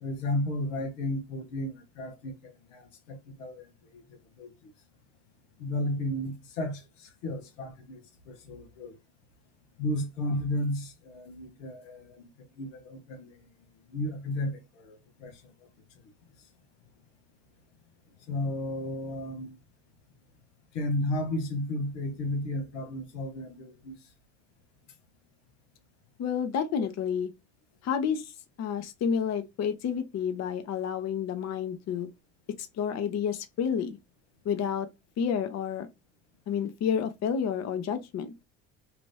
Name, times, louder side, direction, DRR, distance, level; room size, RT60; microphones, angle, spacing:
voice 1, 0.0-4.7 5.6-9.0 9.8-13.5 13.9-15.5 18.3-19.6 20.7-24.0 26.8-26.9, left 1 dB, 80° left, 0.9 m, -34 dB
voice 2, 26.2-27.3 27.8-28.3 28.6-32.1 32.6-34.0 34.4-34.9 35.2-35.9 36.5-38.3, left 7 dB, 45° left, 0.7 m, -30 dB
2.9 x 2.5 x 3.2 m
hypercardioid pair, 70°, 38 cm